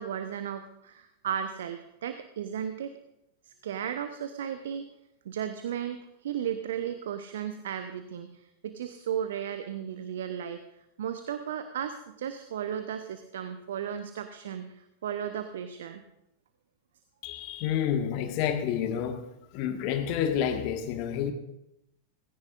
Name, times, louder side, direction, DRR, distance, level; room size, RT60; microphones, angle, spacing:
voice 1, 0.0-2.9 3.4-4.9 5.2-10.6 11.0-16.0, right 9 dB, 60° right, 9 dB, 0.8 m, -35 dB
voice 2, 17.2-19.2 19.5-21.3, left 9 dB, 45° left, 7 dB, 1.4 m, -29 dB
18.0 x 16.0 x 2.5 m, 0.83 s
figure-of-eight pair, 90°, 0 cm